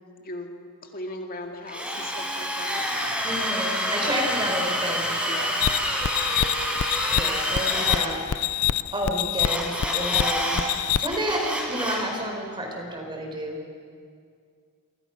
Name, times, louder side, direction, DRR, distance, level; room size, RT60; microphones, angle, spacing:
voice 1, 0.8-3.2 3.9-4.1 5.3-5.6, left 2 dB, 40° left, 2 dB, 2.1 m, -38 dB
Drill, 1.7-8.0 9.4-10.6 11.0-12.1, equal, 5° right, 5.1 m, -28 dB
voice 2, 3.2-5.3 7.1-8.6 8.9-13.6, equal, 20° right, 1 dB, 4.7 m, -30 dB
sound 1, 5.6-11.3, left 11 dB, 90° left, 0.5 m, -26 dB
27.5 x 25.5 x 6.0 m, 2.2 s
head